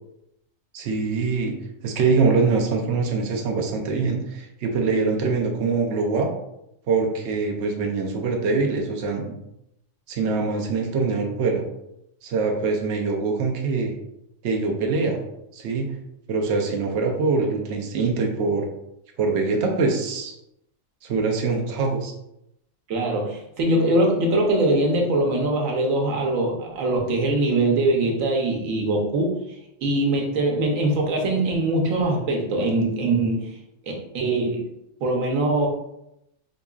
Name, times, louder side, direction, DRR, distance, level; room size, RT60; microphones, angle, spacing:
voice 1, 0.7-1.5 1.8-6.3 6.9-9.3 10.1-11.6 12.2-13.9 14.4-15.2 15.5-15.9 16.3-18.7 19.2-20.3 21.0-22.1, right 4 dB, 65° right, 2 dB, 0.8 m, -23 dB
voice 2, 22.9-29.3 29.8-33.4 34.1-34.6 35.0-35.7, right 2 dB, 90° right, 0 dB, 1.2 m, -22 dB
3.8 x 3.0 x 2.3 m, 0.81 s
omnidirectional pair, 1.4 m